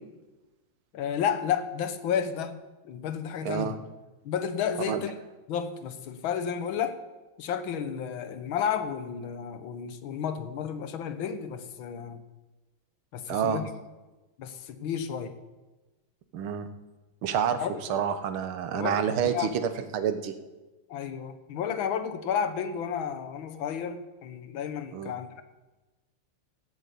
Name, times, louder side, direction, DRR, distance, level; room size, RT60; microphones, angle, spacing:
voice 1, 0.9-3.7 4.2-5.1 5.5-7.0 7.4-12.2 13.1-13.7 14.4-15.3 17.6-18.0 18.7-19.5 20.9-25.4, left 8 dB, 70° left, 10 dB, 1.8 m, -32 dB
voice 2, 3.4-3.8 4.9-5.0 13.3-13.6 16.3-16.7 17.2-17.6 17.9-20.3 24.9-25.1, right 8 dB, 75° right, 9 dB, 1.9 m, -28 dB
15.0 x 8.2 x 8.3 m, 1.1 s
omnidirectional pair, 2.4 m